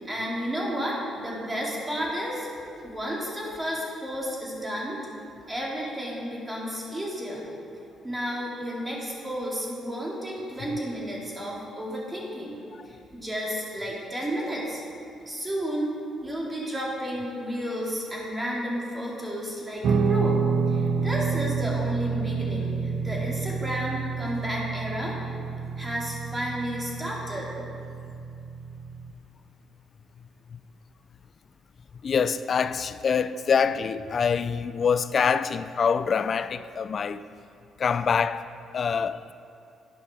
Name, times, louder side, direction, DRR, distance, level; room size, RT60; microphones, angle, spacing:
voice 1, 0.0-2.5 2.8-5.0 5.4-7.5 8.0-12.5 12.9-14.8 15.3-15.9 16.2-20.4 20.7-25.2 25.8-27.5, equal, 20° right, 2.4 m, -32 dB
Guitar, 19.8-29.1, right 5 dB, 65° right, 0.4 m, -29 dB
voice 2, 32.0-37.3 37.8-38.5 38.7-39.2, left 6 dB, 50° left, 0.3 m, -25 dB
11.0 x 5.7 x 4.9 m
cardioid pair, 90°, 0 cm